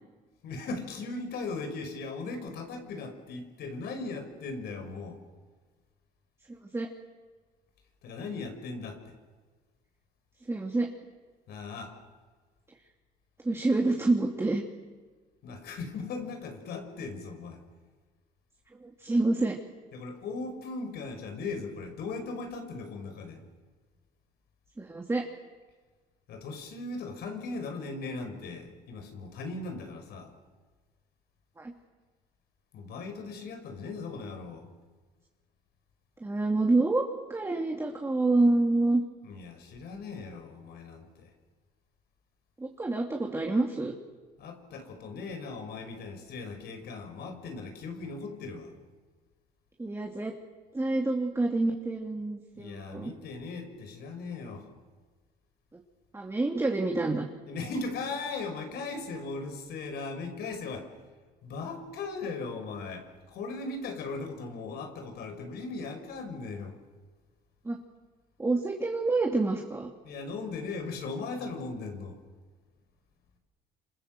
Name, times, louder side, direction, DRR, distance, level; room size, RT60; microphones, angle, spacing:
voice 1, 0.4-5.2 8.0-9.0 11.5-11.9 15.4-17.6 19.9-23.4 26.3-30.3 32.7-34.7 39.3-41.3 44.4-48.7 52.6-54.7 57.5-60.9 61.4-66.7 70.0-72.2, left 3 dB, 70° left, 6 dB, 5.6 m, -38 dB
voice 2, 6.5-6.9 10.5-10.9 13.4-14.6 18.8-19.6 24.8-25.3 31.6-31.7 36.2-37.0 37.3-39.0 42.6-43.9 49.8-50.3 50.7-53.1 56.1-57.2 67.6-67.8 68.4-69.9, right 2 dB, 15° right, 1 dB, 2.8 m, -27 dB
27.5 x 27.5 x 7.8 m, 1.4 s
cardioid pair, 110°, 17 cm